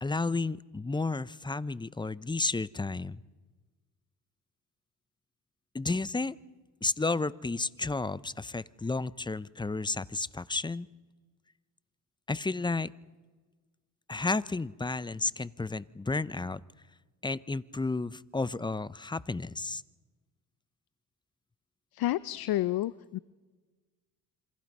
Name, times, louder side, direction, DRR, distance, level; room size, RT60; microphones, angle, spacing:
voice 1, 0.0-3.2 5.7-6.4 6.8-10.9 12.3-12.9 14.1-16.6 17.2-19.8, left 3 dB, 10° left, 18 dB, 0.6 m, -32 dB
voice 2, 21.9-23.2, left 15 dB, 65° left, 17 dB, 0.7 m, -30 dB
27.0 x 24.5 x 5.4 m, 1.3 s
supercardioid pair, 80°, 40 cm